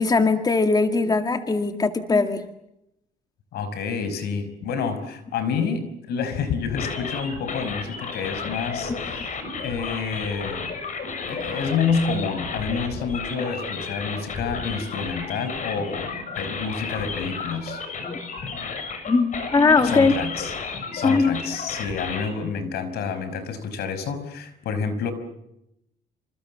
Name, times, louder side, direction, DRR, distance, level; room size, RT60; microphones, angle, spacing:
voice 1, 0.0-2.4 18.0-18.2 19.1-20.1 21.0-21.4, left 4 dB, 25° left, 7 dB, 2.1 m, -20 dB
voice 2, 3.5-10.7 11.3-16.1 16.4-17.8 19.8-20.5 20.9-25.1, left 5 dB, 70° left, 12 dB, 5.4 m, -28 dB
sound 1, 6.8-22.3, left 4 dB, 50° left, 7.1 m, -33 dB
27.5 x 27.0 x 7.5 m, 0.83 s
cardioid pair, 110°, 17 cm